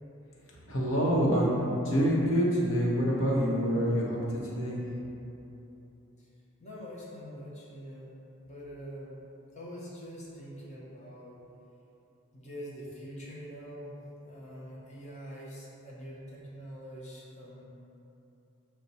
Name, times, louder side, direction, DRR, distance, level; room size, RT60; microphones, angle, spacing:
voice 1, 0.6-4.8, equal, 65° left, -5 dB, 0.9 m, -26 dB
voice 2, 6.6-9.2 9.5-11.4 12.3-14.0 14.2-17.6, equal, 35° left, -6 dB, 0.9 m, -44 dB
5.7 x 2.2 x 4.0 m, 3.0 s
head